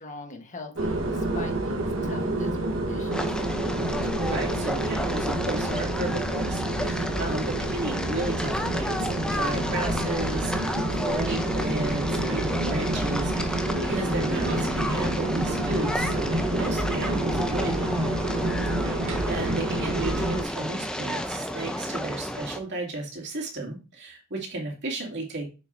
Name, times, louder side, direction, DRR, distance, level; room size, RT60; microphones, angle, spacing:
voice 1, 0.0-3.2 18.3-18.7, left 2 dB, 40° left, 1.2 m, -43 dB
sound 1, 0.8-20.4, right 1 dB, 75° right, 1.3 m, -28 dB
sound 2, 3.1-22.6, equal, 5° left, 0.6 m, -32 dB
voice 2, 4.2-18.0 19.3-25.5, right 2 dB, 60° right, 2.5 m, -34 dB
6.9 x 6.5 x 2.6 m
head